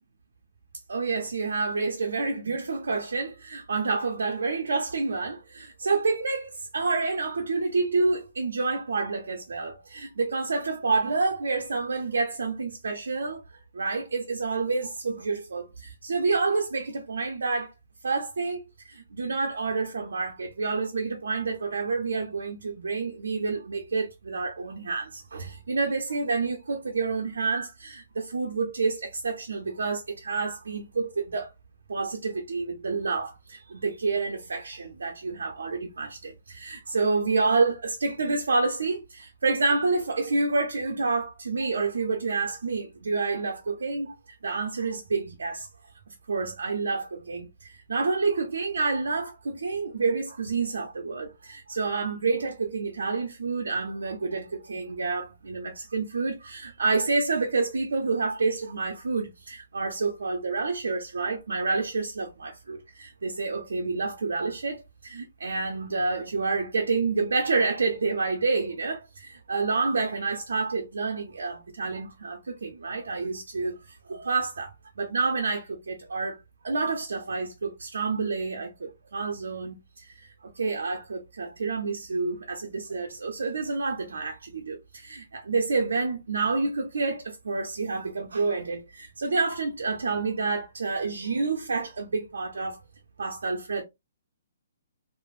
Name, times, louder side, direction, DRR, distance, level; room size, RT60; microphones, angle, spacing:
voice 1, 0.9-17.7 18.0-31.5 31.9-44.1 44.4-45.7 46.3-80.3 80.5-92.8 93.2-93.8, right 4 dB, 80° right, 0.5 m, -28 dB
3.1 x 2.0 x 2.4 m
hypercardioid pair, 140°, 0 cm